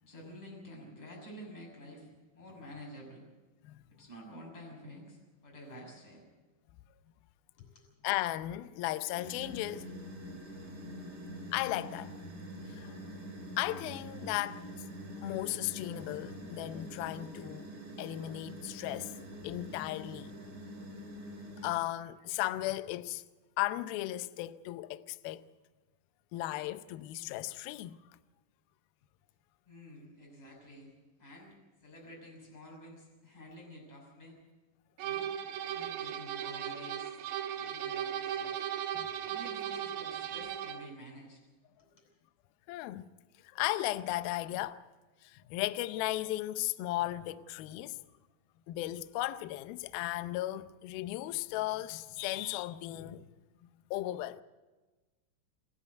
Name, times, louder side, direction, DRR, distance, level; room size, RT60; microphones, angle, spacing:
voice 1, 0.0-2.1 2.3-3.2 4.0-6.2 7.6-7.8 29.7-30.9 31.2-31.6 31.8-34.4 35.0-35.3 35.6-37.1 37.5-38.7 39.2-41.4 41.8-41.9, equal, 10° left, 6.1 m, -50 dB
voice 2, 8.0-9.9 11.5-12.1 12.7-13.0 13.6-14.6 15.2-17.7 18.0-19.1 19.4-20.3 21.6-23.2 23.6-25.5 26.3-28.0 38.9-39.1 42.7-43.1 43.4-44.8 45.2-48.0 48.7-53.3 53.9-54.4, left 16 dB, 80° left, 2.3 m, -36 dB
sound 1, 9.2-21.7, equal, 25° right, 2.7 m, -45 dB
sound 2, 35.0-40.9, right 10 dB, 80° right, 3.4 m, -37 dB
28.0 x 9.8 x 9.4 m
omnidirectional pair, 5.0 m